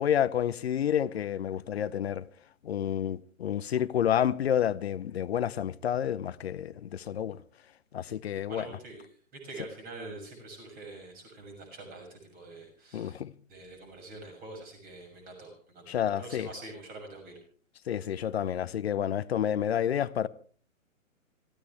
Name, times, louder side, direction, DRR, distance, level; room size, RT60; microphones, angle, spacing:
voice 1, 0.0-2.2 2.6-7.4 7.9-8.7 12.9-13.3 15.9-16.5 17.9-20.3, left 9 dB, 50° left, 0.9 m, -29 dB
voice 2, 8.5-13.2 13.5-17.4, right 2 dB, 20° right, 6.6 m, -45 dB
26.5 x 15.5 x 3.4 m
figure-of-eight pair, 125°, 41 cm